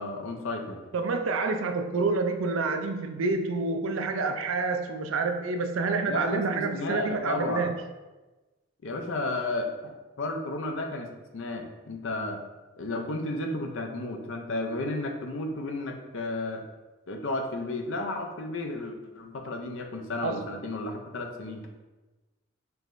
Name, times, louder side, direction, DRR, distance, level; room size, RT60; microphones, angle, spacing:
voice 1, 0.0-0.8 6.1-7.7 8.8-11.1 11.3-12.4 12.8-16.6 17.1-21.7, left 2 dB, 60° left, 4 dB, 0.5 m, -33 dB
voice 2, 0.9-7.7 20.2-20.4, right 4 dB, 65° right, 6 dB, 0.4 m, -28 dB
4.6 x 3.1 x 2.5 m, 1.2 s
head